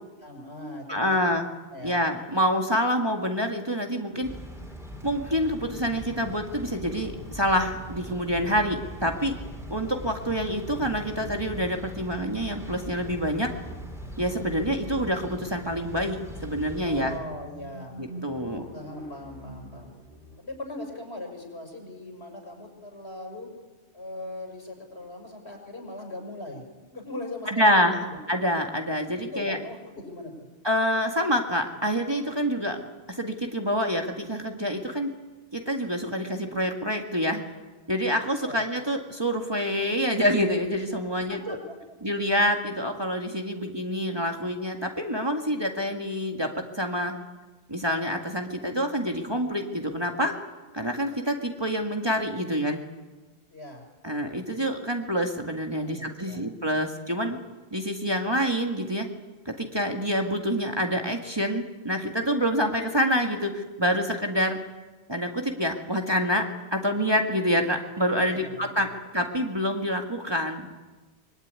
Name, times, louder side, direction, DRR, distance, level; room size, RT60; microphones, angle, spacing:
voice 1, 0.2-1.3 1.7-2.1 16.8-18.0 18.4-19.9 20.4-23.5 23.9-26.6 26.9-28.2 29.2-30.5 38.4-38.6 41.2-42.0 53.5-53.8 55.7-56.5 68.2-69.0, left 1 dB, 65° left, 2 dB, 6.5 m, -40 dB
voice 2, 0.9-1.5 1.8-4.3 5.0-9.4 9.7-13.5 14.2-17.1 18.0-18.6 27.5-29.6 30.6-32.8 33.1-35.1 35.5-37.4 37.9-41.6 42.0-47.1 47.7-50.4 50.7-52.8 54.0-57.4 57.7-59.1 59.5-64.6 65.1-68.9 69.1-70.8, equal, 20° right, 3 dB, 2.0 m, -27 dB
sound 1, 4.2-17.2, equal, ahead, 3.8 m, -41 dB
sound 2, 12.9-20.6, equal, 50° right, 6.8 m, -47 dB
24.5 x 22.5 x 9.7 m, 1.2 s
omnidirectional pair, 1.2 m